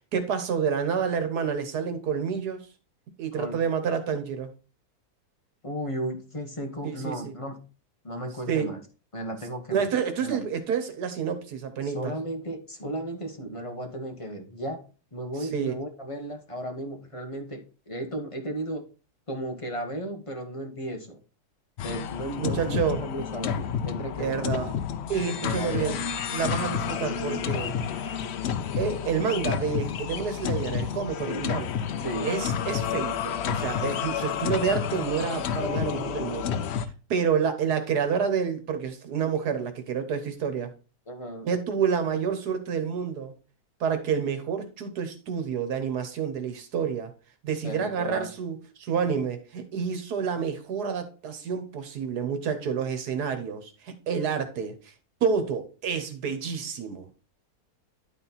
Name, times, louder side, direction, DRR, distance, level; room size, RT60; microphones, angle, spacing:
voice 1, 0.1-2.7 3.2-4.5 6.8-7.4 8.5-8.7 9.7-12.1 15.4-15.8 22.4-23.0 24.2-24.7 25.1-26.0 26.3-27.7 28.8-31.7 32.2-36.7 37.1-40.7 41.4-43.3 43.8-47.1 47.4-54.9 55.2-57.1, right 6 dB, 85° right, 1.6 m, -29 dB
voice 2, 5.6-7.6 8.0-8.8 9.1-9.9 10.2-10.4 11.8-14.8 15.1-18.8 19.3-21.2 21.8-24.7 25.4-26.1 31.2-31.5 32.0-32.3 41.1-41.5 47.6-48.3, right 1 dB, 20° left, 1.3 m, -35 dB
sound 1, 21.8-36.9, left 8 dB, 65° left, 0.7 m, -30 dB
11.0 x 4.3 x 4.0 m
omnidirectional pair, 1.7 m